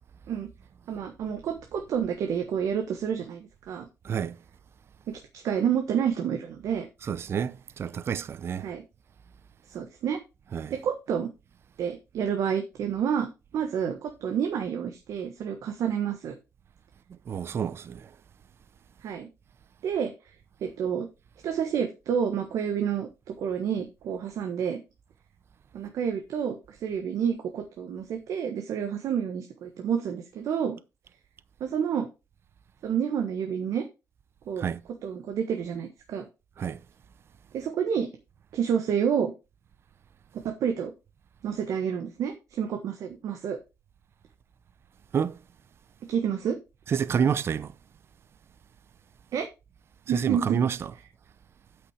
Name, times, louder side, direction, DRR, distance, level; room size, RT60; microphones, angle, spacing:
voice 1, 0.9-3.9 5.1-6.9 8.6-8.8 9.7-10.2 10.7-11.3 11.8-16.3 19.0-19.3 19.8-20.3 20.6-21.1 21.4-24.8 25.7-30.8 31.6-32.1 32.8-33.8 34.5-34.7 35.0-36.3 37.5-38.1 38.5-39.3 40.4-40.9 41.4-43.6 46.1-46.6 49.3-49.5 50.1-50.6, right 8 dB, 70° right, 1.4 m, -29 dB
voice 2, 4.0-4.4 7.1-8.6 10.5-10.7 17.3-18.1 34.6-34.8 36.6-36.8 45.1-45.4 46.9-47.7 50.1-50.8, right 7 dB, 45° right, 0.6 m, -28 dB
8.3 x 6.0 x 4.9 m
cardioid pair, 115°, 6 cm